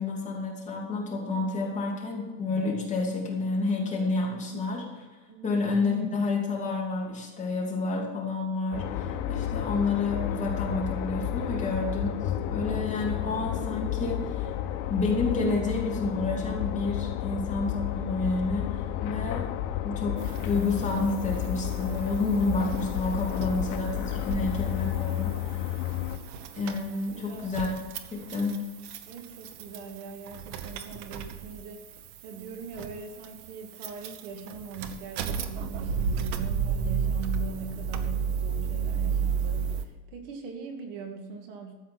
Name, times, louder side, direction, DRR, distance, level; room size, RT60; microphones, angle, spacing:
voice 1, 0.0-4.8 5.4-12.1 12.5-14.5 14.9-19.5 19.8-25.9 26.5-27.7 28.1-28.6, left 3 dB, 15° left, -3 dB, 2.8 m, -29 dB
voice 2, 5.3-5.6 27.1-27.5 29.1-31.9 32.2-41.7, right 4 dB, 60° right, 4 dB, 2.2 m, -41 dB
sound 1, 8.7-26.2, left 11 dB, 65° left, 1.4 m, -31 dB
sound 2, 20.2-39.8, right 6 dB, 90° right, 1.3 m, -34 dB
13.0 x 8.0 x 6.0 m, 1.3 s
cardioid pair, 160°, 43 cm